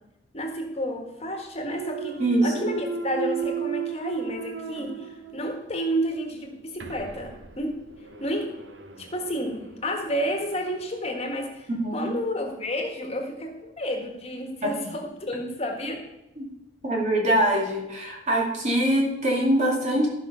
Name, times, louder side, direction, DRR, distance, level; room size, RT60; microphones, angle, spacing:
voice 1, 0.3-2.2 2.4-7.7 8.2-8.5 9.0-16.0, equal, 35° left, 2 dB, 1.6 m, -31 dB
Thump thud, 1.6-5.7 6.1-10.8, right 7 dB, 85° right, 1.0 m, -35 dB
voice 2, 2.2-2.5 11.7-12.1 14.6-14.7 16.4-16.5 16.8-20.1, right 1 dB, 40° right, -1 dB, 2.5 m, -23 dB
13.5 x 5.8 x 5.6 m, 0.92 s
head